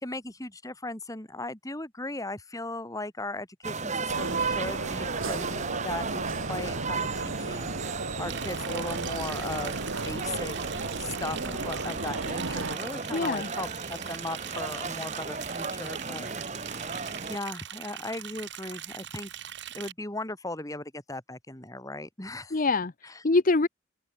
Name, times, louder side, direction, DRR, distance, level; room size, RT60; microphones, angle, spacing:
voice 1, 0.0-7.1 7.4-9.8 10.0-10.5 11.0-16.3 16.5-16.9 17.3-22.6, left 2 dB, 15° left, 2.3 m, -38 dB
sound 1, 3.6-17.4, right 4 dB, 35° right, 3.3 m, -35 dB
sound 2, 4.1-12.8, right 3 dB, 85° right, 1.9 m, -35 dB
Liquid, 8.3-19.9, right 10 dB, 60° right, 6.3 m, -41 dB
voice 2, 13.1-13.5 22.5-23.7, left 3 dB, 40° left, 0.8 m, -25 dB
open air
head